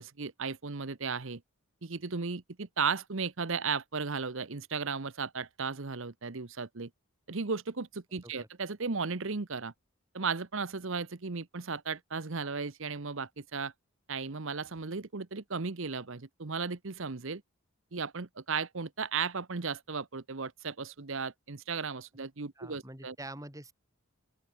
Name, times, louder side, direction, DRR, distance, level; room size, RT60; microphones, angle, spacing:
voice 1, 0.0-1.4 1.8-6.9 7.3-9.7 10.1-13.7 14.1-17.4 17.9-23.1, right 5 dB, 60° right, 1.0 m, -35 dB
voice 2, 22.6-23.7, right 1 dB, 15° right, 4.0 m, -45 dB
open air
head